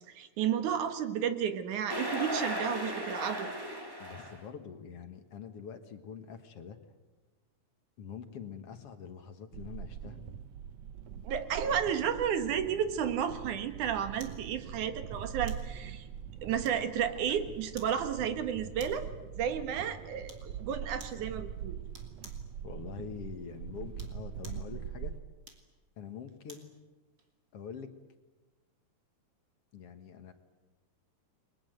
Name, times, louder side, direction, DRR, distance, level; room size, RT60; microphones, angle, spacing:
voice 1, 0.1-3.5 11.2-16.1 16.4-19.0 19.4-21.8, right 8 dB, 85° right, 9 dB, 3.0 m, -32 dB
sound 1, 1.9-4.4, equal, 10° right, 2.0 m, -36 dB
voice 2, 4.0-6.8 8.0-10.2 22.6-25.1 26.0-26.8 27.5-27.9 29.7-30.3, left 7 dB, 55° left, 8 dB, 2.3 m, -45 dB
sound 2, 9.5-25.2, right 8 dB, 65° right, 2.0 m, -43 dB
sound 3, 14.2-14.4 15.5-15.7 16.6-17.1 17.8-18.0 18.8-19.1 20.3-20.5 21.0-21.2 21.9-22.5 23.8-24.7 25.4-26.7 27.2-27.3, right 3 dB, 40° right, 3.3 m, -52 dB
30.0 x 22.0 x 8.0 m, 1.2 s
omnidirectional pair, 3.4 m